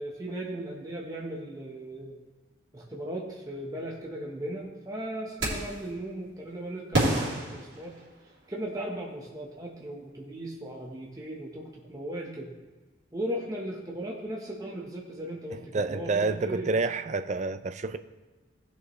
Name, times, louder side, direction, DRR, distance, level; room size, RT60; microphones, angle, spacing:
voice 1, 0.0-2.2 2.7-8.0 8.5-12.5 13.1-16.7, right 1 dB, 20° right, 1.1 m, -37 dB
sound 1, 5.4-5.9 6.9-8.5, right 1 dB, 65° right, 3.3 m, -29 dB
voice 2, 15.5-18.0, right 3 dB, 35° right, 0.4 m, -29 dB
18.0 x 6.2 x 3.2 m
head